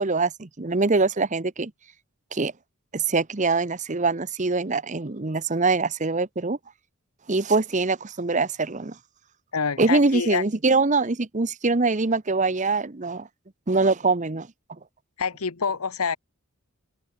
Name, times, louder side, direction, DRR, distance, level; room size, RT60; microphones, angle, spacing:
voice 1, 0.0-1.7 2.3-2.5 2.9-6.6 7.3-9.0 9.8-13.3 13.7-14.5, right 3 dB, 35° right, 0.9 m, -23 dB
voice 2, 9.5-10.4 15.2-16.2, left 5 dB, 85° left, 1.0 m, -26 dB
open air
head